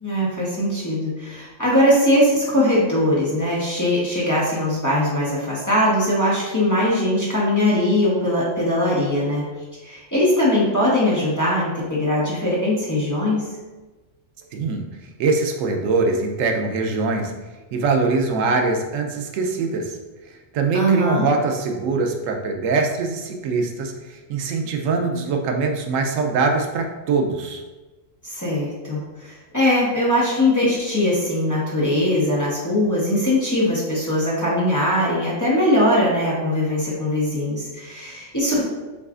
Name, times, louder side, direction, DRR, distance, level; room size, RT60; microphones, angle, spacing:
voice 1, 0.0-9.4 9.8-13.5 20.7-21.3 28.2-38.6, left 1 dB, 15° left, -7 dB, 0.8 m, -21 dB
voice 2, 14.5-14.9 15.2-17.3 17.7-20.0 20.3-27.6, right 4 dB, 90° right, 3 dB, 1.0 m, -23 dB
7.0 x 2.4 x 2.4 m, 1.2 s
omnidirectional pair, 1.3 m